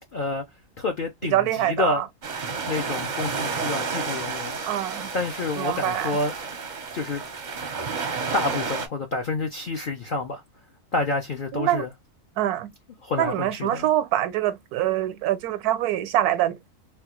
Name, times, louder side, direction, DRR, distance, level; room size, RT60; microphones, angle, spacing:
voice 1, 0.1-0.4 0.8-2.0 2.7-4.6 5.1-6.3 6.9-7.2 8.3-10.4 10.9-11.9 13.0-13.9, left 3 dB, 60° left, 0.5 m, -28 dB
voice 2, 1.3-2.1 4.7-5.1 5.6-6.2 11.5-11.9 12.4-12.7 13.2-16.6, right 13 dB, 85° right, 1.1 m, -24 dB
sound 1, 2.2-8.9, right 5 dB, 50° right, 0.6 m, -31 dB
3.5 x 2.3 x 2.9 m
omnidirectional pair, 1.6 m